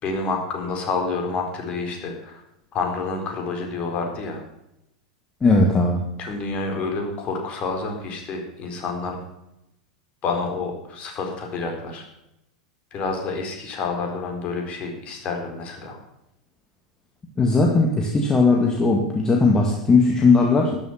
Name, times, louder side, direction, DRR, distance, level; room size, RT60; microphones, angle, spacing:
voice 1, 0.0-2.4 2.7-4.4 6.2-9.2 10.2-12.0 12.9-16.0, left 4 dB, 35° left, 3 dB, 4.2 m, -28 dB
voice 2, 5.4-6.0 17.4-20.8, left 3 dB, 20° left, 1 dB, 2.0 m, -18 dB
13.0 x 11.5 x 6.0 m, 0.85 s
figure-of-eight pair, 85°, 4 cm